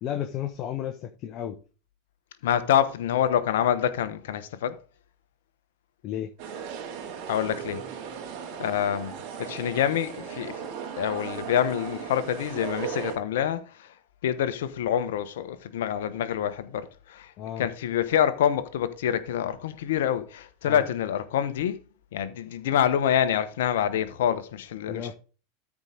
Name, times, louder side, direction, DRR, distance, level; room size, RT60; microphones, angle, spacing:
voice 1, 0.0-1.6 6.0-6.3 17.4-17.7 20.6-20.8 24.9-25.1, left 10 dB, 45° left, 1.1 m, -33 dB
voice 2, 2.4-4.8 7.3-7.8 8.6-10.5 11.0-13.9 14.2-17.3 17.6-21.8 22.1-25.1, left 10 dB, 70° left, 1.1 m, -26 dB
sound 1, 6.4-13.1, right 7 dB, 60° right, 2.5 m, -37 dB
13.0 x 4.9 x 3.9 m
hypercardioid pair, 85°, 0 cm